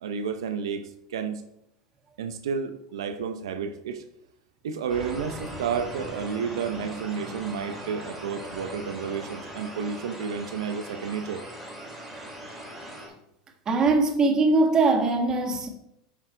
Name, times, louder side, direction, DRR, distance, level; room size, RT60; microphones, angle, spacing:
voice 1, 0.0-1.4 2.2-4.0 4.6-11.4, right 6 dB, 90° right, 0.7 m, -31 dB
sound 1, 4.9-13.1, right 1 dB, 5° right, 3.3 m, -40 dB
voice 2, 13.7-15.7, right 3 dB, 30° right, 1.5 m, -21 dB
9.0 x 6.1 x 3.3 m
supercardioid pair, 115°, 2 cm